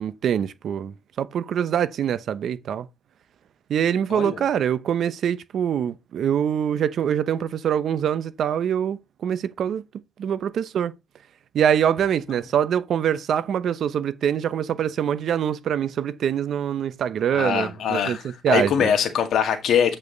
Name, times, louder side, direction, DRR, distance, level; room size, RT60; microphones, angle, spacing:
voice 1, 0.0-2.9 3.7-9.8 10.2-10.9 11.5-18.2 18.4-18.9, right 9 dB, 65° right, 0.8 m, -24 dB
voice 2, 4.1-4.4 17.3-20.0, left 8 dB, 70° left, 1.9 m, -23 dB
8.6 x 5.6 x 4.0 m
cardioid pair, 90°, 0 cm